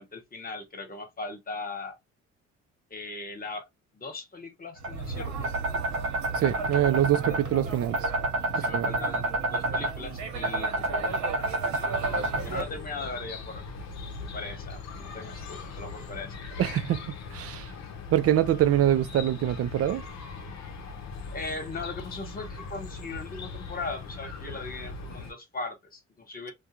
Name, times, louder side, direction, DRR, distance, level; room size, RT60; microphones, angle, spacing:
voice 1, 0.0-1.9 2.9-3.7 3.9-5.5 7.2-7.4 8.5-13.6 14.2-16.6 21.3-26.5, left 3 dB, 30° left, 1.1 m, -39 dB
sound 1, 4.8-12.6, right 2 dB, 70° right, 1.0 m, -29 dB
voice 2, 6.4-8.1 8.6-8.9 16.6-17.0 17.3-17.7 18.1-20.0, right 12 dB, 50° right, 0.4 m, -24 dB
Chirp tweet, 11.9-25.3, left 4 dB, 65° left, 0.7 m, -40 dB
2.4 x 2.2 x 2.8 m
cardioid pair, 90°, 30 cm